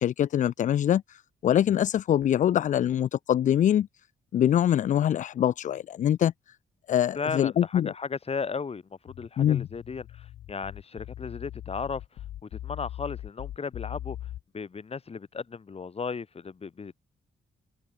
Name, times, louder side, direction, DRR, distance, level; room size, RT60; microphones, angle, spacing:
voice 1, 0.0-3.9 4.3-6.3 6.9-7.9 9.4-9.7, left 10 dB, 60° left, 0.4 m, -24 dB
voice 2, 7.1-12.0 12.4-17.0, left 5 dB, 45° left, 2.9 m, -35 dB
sound 1, 9.1-14.4, left 12 dB, 85° left, 1.6 m, -40 dB
open air
cardioid pair, 65°, 15 cm